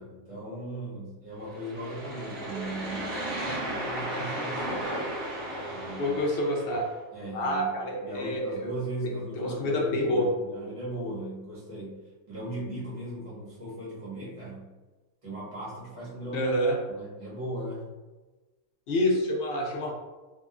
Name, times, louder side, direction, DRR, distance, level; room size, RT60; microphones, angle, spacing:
voice 1, 0.0-5.0 5.7-6.2 7.1-14.7 15.2-16.5 16.9-17.9, right 1 dB, 30° right, -8 dB, 0.9 m, -38 dB
sound 1, 1.5-6.9, right 1 dB, 60° right, 1.0 m, -34 dB
voice 2, 6.0-6.8 7.3-8.7 9.0-10.3 16.3-16.8 18.9-19.9, left 1 dB, 65° left, -1 dB, 0.6 m, -27 dB
2.9 x 2.2 x 2.3 m, 1.2 s
omnidirectional pair, 1.4 m